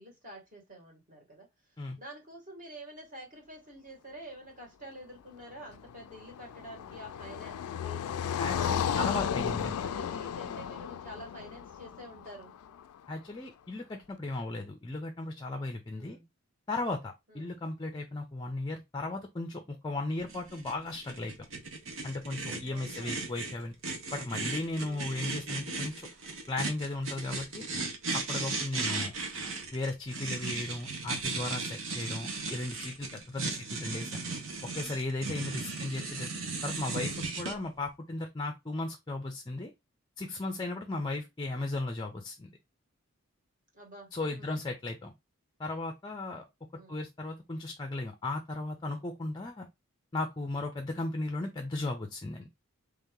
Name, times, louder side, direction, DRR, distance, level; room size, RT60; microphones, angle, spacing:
voice 1, 0.0-12.5 15.9-16.3 17.3-17.6 22.7-23.2 24.8-25.3 33.4-33.7 36.0-36.3 43.7-44.6 46.7-47.0, right 1 dB, 35° right, 1.7 m, -48 dB
Car passing by, 5.6-12.8, left 8 dB, 85° left, 0.3 m, -34 dB
voice 2, 8.4-9.8 13.1-16.2 16.7-21.3 22.0-23.7 24.1-26.1 26.5-27.6 28.1-29.1 29.7-34.2 34.8-36.3 36.6-39.7 40.2-42.5 44.1-45.1 45.6-46.4 46.9-49.7 50.1-52.5, left 2 dB, 20° left, 0.5 m, -36 dB
sound 1, 20.3-37.5, right 3 dB, 65° right, 1.1 m, -36 dB
3.5 x 2.9 x 3.6 m
head